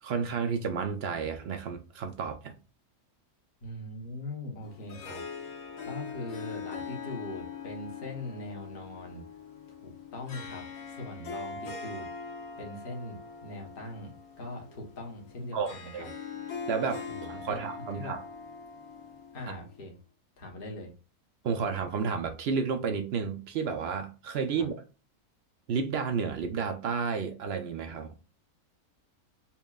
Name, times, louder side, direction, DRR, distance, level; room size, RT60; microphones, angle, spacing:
voice 1, 0.0-2.5 15.5-16.1 16.7-18.2 21.4-24.8 25.7-28.1, right 5 dB, 65° right, 0.6 m, -31 dB
voice 2, 3.6-5.2 5.4-9.2 9.8-12.1 12.6-16.1 17.1-17.6 17.9-18.2 19.3-20.0 20.4-20.9 24.5-24.7, left 2 dB, 40° left, 1.1 m, -41 dB
Harp, 4.6-19.9, left 5 dB, 65° left, 1.1 m, -42 dB
5.7 x 2.2 x 2.3 m
omnidirectional pair, 1.6 m